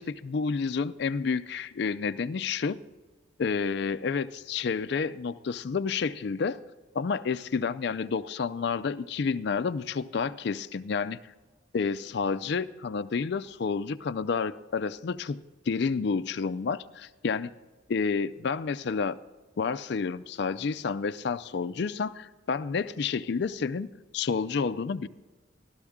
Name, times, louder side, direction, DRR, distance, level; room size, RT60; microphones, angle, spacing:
voice 1, 0.0-2.8 3.4-6.6 6.9-11.2 11.7-17.5 17.9-19.2 19.6-22.1 22.5-23.9 24.1-25.1, left 5 dB, 55° left, 12 dB, 0.4 m, -30 dB
14.5 x 12.5 x 3.6 m, 1.2 s
head